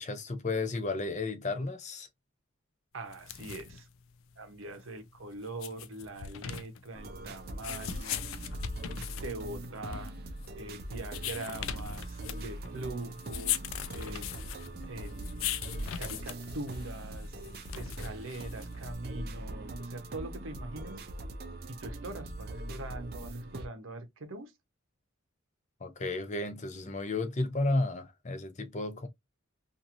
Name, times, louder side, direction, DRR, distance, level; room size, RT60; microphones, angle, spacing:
voice 1, 0.0-2.1 25.8-29.1, left 2 dB, 35° left, 0.5 m, -33 dB
voice 2, 2.9-3.9 4.4-8.5 9.2-10.1 10.6-13.6 13.9-14.3 14.9-15.5 16.0-17.4 17.7-21.0 21.7-24.5, right 2 dB, 80° right, 0.8 m, -42 dB
sound 1, 3.1-19.0, left 9 dB, 85° left, 0.4 m, -40 dB
sound 2, 6.9-23.7, right 1 dB, 50° right, 0.5 m, -41 dB
2.9 x 2.6 x 2.5 m
head